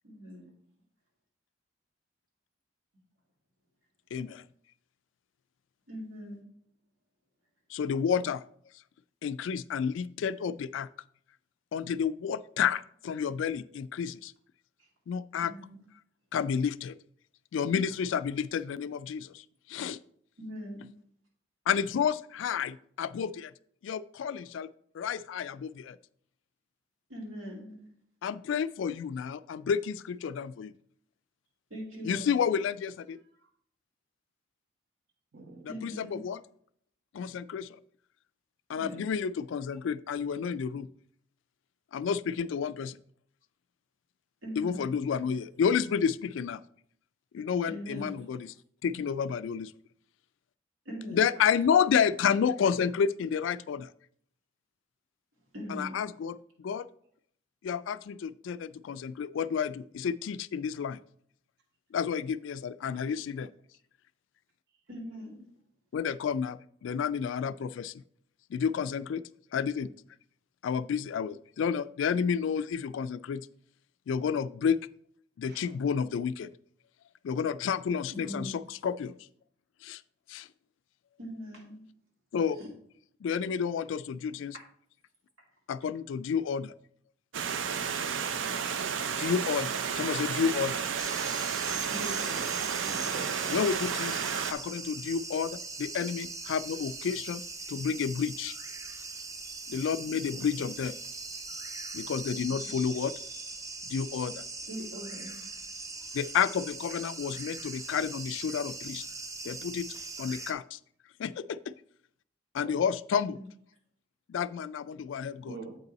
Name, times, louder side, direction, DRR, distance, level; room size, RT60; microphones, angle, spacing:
voice 1, 0.0-0.5 5.9-6.5 14.8-14.9 15.3-15.8 20.4-20.8 27.1-27.8 31.7-32.4 35.7-36.2 38.8-39.0 44.4-44.9 47.7-48.3 50.8-51.2 55.5-56.0 64.9-65.4 78.1-78.5 81.2-81.8 82.6-82.7 88.0-88.4 91.9-92.7 102.5-102.7 104.7-105.4 113.2-113.4, equal, 90° right, -1 dB, 2.4 m, -41 dB
voice 2, 4.1-4.4 7.7-8.4 9.2-10.9 11.7-14.3 15.1-15.5 16.3-16.9 17.5-20.0 21.7-23.5 23.8-24.7 24.9-26.0 28.2-30.7 32.0-33.2 35.6-36.4 37.1-37.8 38.7-40.9 41.9-43.0 44.6-46.6 47.3-48.5 48.8-49.7 51.1-53.9 55.7-56.9 57.6-61.0 61.9-63.5 65.9-67.9 68.5-69.2 69.5-69.9 70.6-73.5 74.1-74.8 75.4-76.5 77.2-79.1 79.8-80.0 80.3-80.5 82.3-82.6 83.2-84.6 85.7-86.7 89.1-90.8 93.5-94.2 94.5-97.4 97.7-98.6 99.7-100.9 101.9-103.1 103.9-104.4 106.1-109.0 109.4-109.9 110.2-110.8 111.2-111.7 112.5-113.4 114.3-115.6, left 7 dB, 70° left, 16 dB, 0.3 m, -30 dB
voice 3, 35.3-35.7 62.9-63.0 72.1-72.3 75.5-75.7 92.7-93.6 100.3-100.5 112.6-112.8 115.5-115.8, right 3 dB, 55° right, 4 dB, 0.8 m, -44 dB
Stream, 87.3-94.5, right 7 dB, 70° right, 0.5 m, -32 dB
sound 1, 91.0-110.5, right 3 dB, 15° right, 0.5 m, -40 dB
8.2 x 5.3 x 4.1 m, 0.64 s
head